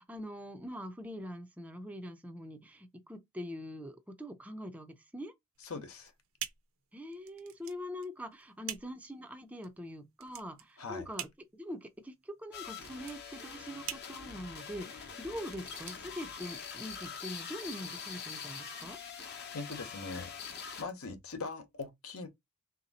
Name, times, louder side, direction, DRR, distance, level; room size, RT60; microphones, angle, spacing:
voice 1, 0.0-5.3 6.9-19.0, equal, 5° right, 0.4 m, -43 dB
sound 1, 5.5-16.9, right 11 dB, 70° right, 0.6 m, -47 dB
voice 2, 5.6-6.1 10.8-11.1 19.5-20.3 20.8-22.3, left 4 dB, 75° left, 0.9 m, -41 dB
sound 2, 12.5-20.8, left 6 dB, 50° left, 0.8 m, -44 dB
3.5 x 2.8 x 4.0 m
head